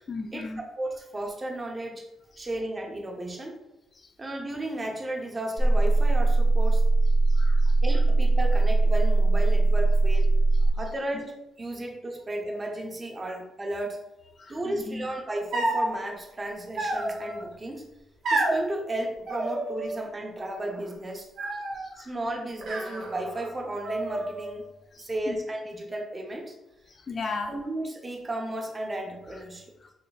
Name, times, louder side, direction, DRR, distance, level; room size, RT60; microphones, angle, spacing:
voice 1, 0.1-0.6 2.4-2.5 3.9-4.1 7.3-8.0 14.4-15.1 21.4-22.1 24.9-25.4 26.9-27.6 29.8-29.9, left 3 dB, 45° left, 4 dB, 0.5 m, -38 dB
voice 2, 0.8-2.0 2.4-3.6 4.2-6.8 7.8-10.3 10.8-11.3 11.6-14.0 14.5-17.9 18.3-21.3 22.0-24.7 25.0-26.5 27.5-29.7, right 1 dB, 25° right, 1 dB, 0.8 m, -34 dB
sound 1, 5.6-10.7, right 2 dB, ahead, 1.0 m, -20 dB
sound 2, 15.5-16.0 16.8-17.4 18.2-18.6 19.3-20.1 20.4-20.9 21.4-21.9 22.6-23.5 23.8-24.6, right 2 dB, 65° right, 1.1 m, -30 dB
4.5 x 3.0 x 2.4 m, 0.91 s
cardioid pair, 90°, 0 cm